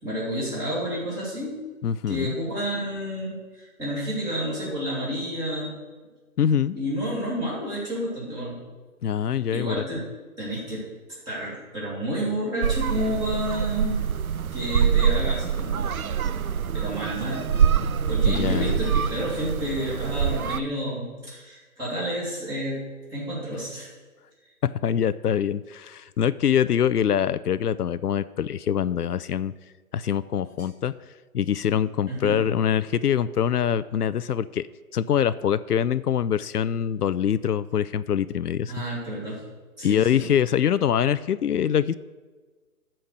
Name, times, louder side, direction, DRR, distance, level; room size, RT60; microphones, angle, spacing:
voice 1, 0.0-1.6 2.1-5.8 6.7-8.6 9.5-10.0 10.4-10.9 11.3-14.0 14.5-15.8 16.7-22.8 23.1-23.9 32.1-32.4 38.7-39.4 39.8-40.3, equal, 10° right, -7 dB, 2.4 m, -30 dB
voice 2, 1.8-2.3 6.4-6.8 9.0-9.8 18.2-18.7 24.6-29.5 29.9-30.9 31.3-34.7 34.9-38.7 39.8-41.9, left 9 dB, 85° left, 15 dB, 0.6 m, -24 dB
sound 1, 12.6-20.6, right 7 dB, 70° right, 0.6 m, -25 dB
13.5 x 4.5 x 6.5 m, 1.3 s
hypercardioid pair, 155°, 45 cm